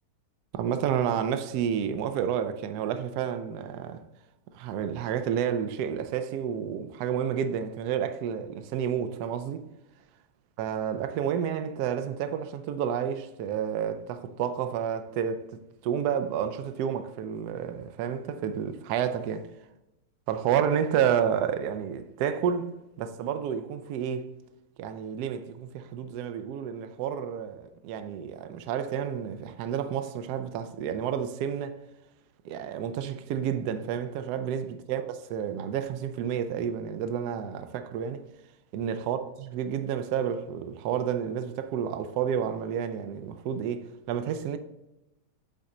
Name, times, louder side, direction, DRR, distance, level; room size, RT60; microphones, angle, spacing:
voice 1, 0.5-4.0 4.5-9.6 10.6-15.5 15.8-19.5 20.3-22.7 23.0-24.3 24.8-31.8 32.4-38.2 38.7-44.6, right 8 dB, 90° right, 0.8 m, -30 dB
7.8 x 4.1 x 3.8 m
omnidirectional pair, 2.3 m